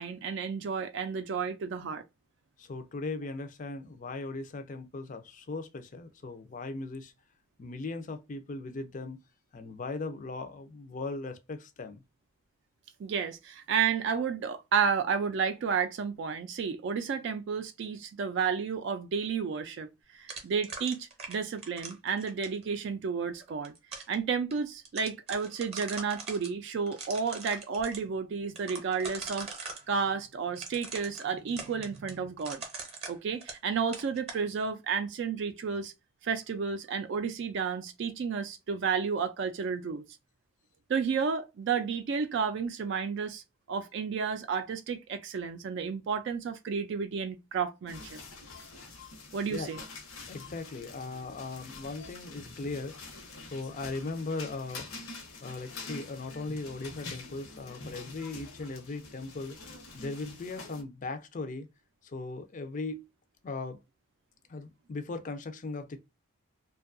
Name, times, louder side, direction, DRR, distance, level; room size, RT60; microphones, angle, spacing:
voice 1, 0.0-2.0 13.0-19.9 20.1-23.7 24.1-32.6 33.1-35.9 36.2-40.0 40.9-43.4 43.7-48.2 49.3-49.8, right 6 dB, 55° right, 0.3 m, -31 dB
voice 2, 2.6-7.1 7.6-9.2 9.5-12.0 49.5-49.7 50.3-55.1 55.4-59.6 59.9-61.7 62.0-63.1 63.4-63.8 64.5-66.0, left 3 dB, 35° left, 0.4 m, -38 dB
sound 1, 20.3-22.6 23.4-24.1 24.5-24.6 24.8-26.5 26.9-28.0 28.6-29.8 30.5-33.7 33.9-34.4, right 4 dB, 30° right, 0.7 m, -42 dB
sound 2, 47.9-60.8, left 3 dB, 85° left, 0.8 m, -46 dB
2.6 x 2.3 x 2.4 m
head